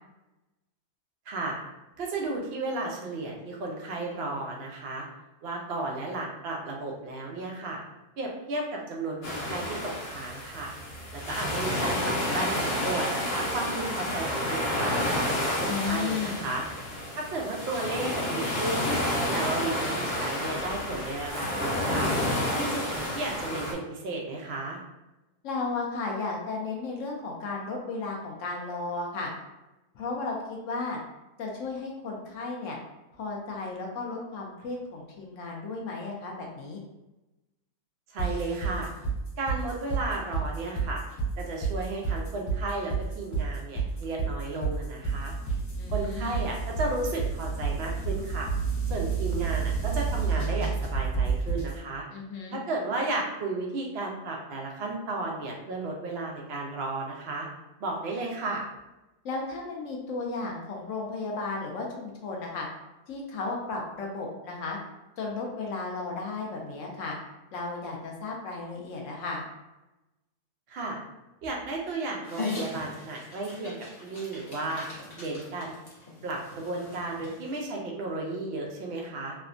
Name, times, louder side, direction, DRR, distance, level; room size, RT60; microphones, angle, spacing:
voice 1, 1.3-1.6 2.0-5.0 5.4-7.8 8.2-10.7 11.1-16.6 17.1-18.9 19.3-22.1 22.5-24.8 38.1-38.9 39.4-41.0 41.4-45.3 45.9-48.5 48.9-52.0 52.5-57.5 57.8-58.6 70.7-71.0 71.4-74.9 75.2-75.7 76.2-79.4, right 2 dB, 85° right, -1 dB, 0.5 m, -33 dB
sound 1, 9.2-23.7, left 1 dB, 85° left, 1.3 m, -30 dB
voice 2, 15.7-16.4 25.4-29.3 29.9-31.0 31.4-32.8 33.1-36.8 45.8-46.5 52.1-52.6 59.2-62.7 63.1-64.8 65.2-67.2 67.5-69.4, left 3 dB, 65° left, 0 dB, 0.8 m, -34 dB
sound 2, 38.2-51.7, right 5 dB, 45° left, 1.2 m, -29 dB
Dog, 72.2-77.6, left 3 dB, 25° left, 0.5 m, -40 dB
3.3 x 2.1 x 2.4 m, 1.0 s
omnidirectional pair, 1.7 m